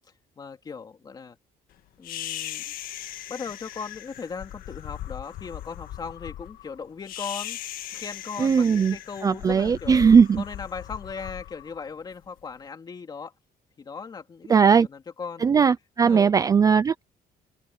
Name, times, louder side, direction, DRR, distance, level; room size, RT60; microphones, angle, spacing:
voice 1, 0.4-1.4 2.0-2.7 3.3-10.1 10.4-13.3 13.8-15.5 16.0-16.3, left 5 dB, 25° left, 3.2 m, -38 dB
sound 1, 2.0-12.4, left 12 dB, 65° left, 1.7 m, -38 dB
voice 2, 8.4-9.0 9.2-10.4 14.5-14.9 15.4-17.0, right 6 dB, 20° right, 0.4 m, -18 dB
open air
cardioid pair, 170°, 16 cm